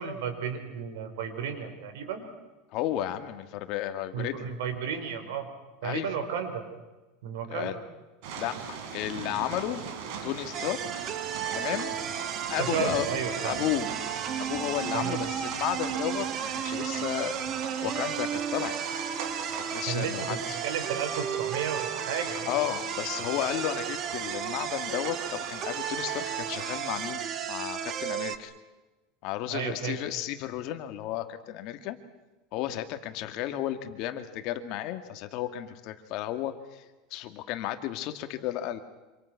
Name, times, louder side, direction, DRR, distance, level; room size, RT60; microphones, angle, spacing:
voice 1, 0.0-2.2 4.1-5.5 5.8-6.6 7.2-7.7 12.6-13.6 14.9-15.2 19.8-22.5 29.5-30.0, right 7 dB, 85° right, 7 dB, 4.9 m, -33 dB
voice 2, 2.7-4.5 5.8-6.1 7.5-7.8 8.3-9.8 10.2-11.1 11.5-11.9 12.5-13.1 13.4-13.9 14.4-17.4 17.8-18.8 19.5-20.6 22.5-28.5 29.2-32.0 32.5-36.8 37.1-38.8, left 13 dB, 50° left, 8 dB, 2.2 m, -33 dB
sound 1, 8.2-27.1, right 6 dB, 60° right, 4.2 m, -40 dB
sound 2, 10.5-28.4, right 8 dB, 35° right, 1.6 m, -34 dB
28.0 x 26.5 x 6.0 m, 1.1 s
supercardioid pair, 155°, 0 cm